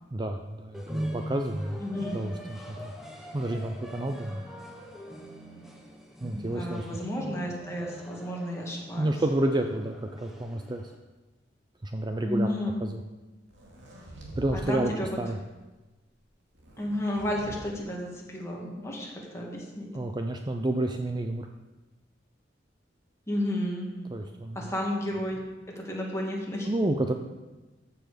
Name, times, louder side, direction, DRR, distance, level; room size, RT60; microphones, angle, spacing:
voice 1, 0.1-1.8 2.1-2.9 3.3-4.4 6.2-6.9 9.0-10.9 11.8-12.5 12.8-13.0 14.4-14.9 15.2-15.4 19.9-21.5 24.1-24.6 26.6-27.1, right 1 dB, 25° right, 5 dB, 0.5 m, -30 dB
sound 1, 0.7-10.9, equal, ahead, 1.2 m, -42 dB
voice 2, 1.8-2.2 6.1-9.1 12.2-12.8 14.5-15.2 16.8-19.9 23.3-23.9 24.5-25.4 25.7-26.7, left 1 dB, 15° left, -2 dB, 2.3 m, -32 dB
sound 2, 13.5-14.6 14.9-15.3 16.5-17.6, right 1 dB, 80° right, 2.4 m, -44 dB
14.0 x 7.0 x 5.1 m, 1.1 s
head